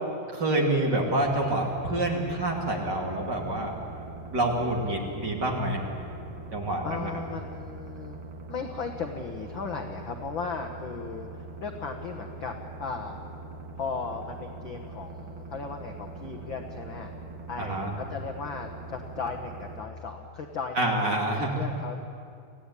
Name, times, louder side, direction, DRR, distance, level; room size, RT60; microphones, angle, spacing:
voice 1, 0.3-3.7 4.3-5.8 6.5-7.1 17.6-17.9 20.7-21.5, right 1 dB, 30° right, 0 dB, 2.9 m, -27 dB
sound 1, 1.2-19.8, right 2 dB, 45° right, 1.6 m, -42 dB
voice 2, 6.8-8.2 8.5-12.5 12.8-13.2 13.8-17.1 17.5-21.1 21.4-22.0, left 5 dB, 65° left, 4 dB, 1.1 m, -36 dB
26.0 x 15.5 x 9.9 m, 2.4 s
omnidirectional pair, 4.2 m